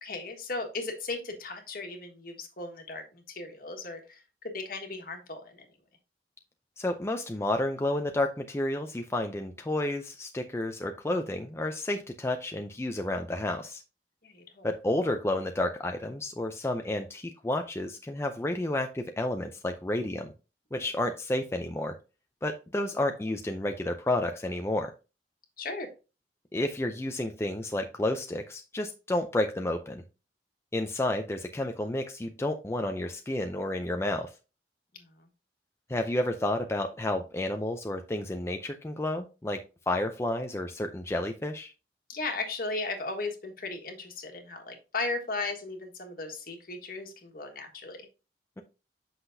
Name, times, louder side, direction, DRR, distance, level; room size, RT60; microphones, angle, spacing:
voice 1, 0.0-5.7 14.2-14.7 20.7-20.9 25.6-25.9 34.9-35.3 42.1-48.1, left 3 dB, 55° left, 4 dB, 1.5 m, -36 dB
voice 2, 6.8-13.8 14.6-20.3 20.7-22.0 22.4-24.9 26.5-30.0 30.7-34.3 35.9-41.7, left 1 dB, 15° left, 5 dB, 0.4 m, -31 dB
7.9 x 5.8 x 2.7 m, 0.30 s
head